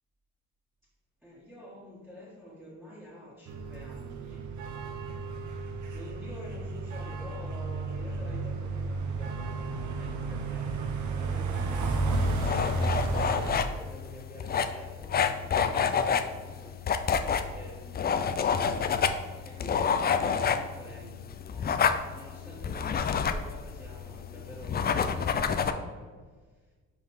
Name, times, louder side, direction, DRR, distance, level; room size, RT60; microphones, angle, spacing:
voice 1, 1.2-16.8 17.5-25.3 25.6-26.1, equal, ahead, -9 dB, 1.6 m, -48 dB
sound 1, 3.5-13.7, right 3 dB, 70° right, 0.8 m, -32 dB
sound 2, 12.1-25.7, left 6 dB, 35° left, 0.4 m, -28 dB
5.2 x 4.0 x 4.8 m, 1.4 s
cardioid pair, 90°, 30 cm